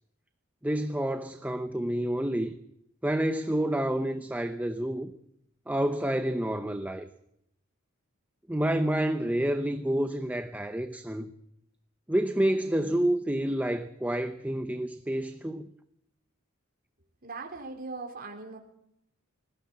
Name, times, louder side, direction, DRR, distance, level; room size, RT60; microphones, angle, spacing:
voice 1, 0.6-2.5 3.0-5.1 5.7-7.1 8.5-11.3 12.1-15.7, right 1 dB, 10° right, 0.8 m, -29 dB
voice 2, 17.2-18.6, right 3 dB, 45° right, 3.9 m, -39 dB
20.5 x 16.0 x 8.8 m
head